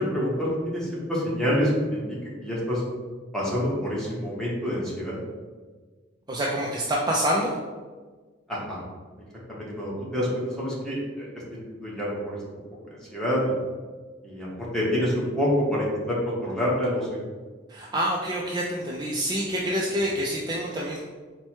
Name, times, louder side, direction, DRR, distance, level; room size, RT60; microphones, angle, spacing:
voice 1, 0.0-2.2 2.4-2.8 3.3-5.2 8.5-8.8 9.5-11.4 11.7-12.6 13.1-13.6 14.2-17.2, equal, 5° left, -6 dB, 1.1 m, -27 dB
voice 2, 6.3-7.5 17.7-21.0, equal, 20° right, -3 dB, 0.4 m, -27 dB
4.3 x 2.2 x 4.4 m, 1.4 s
head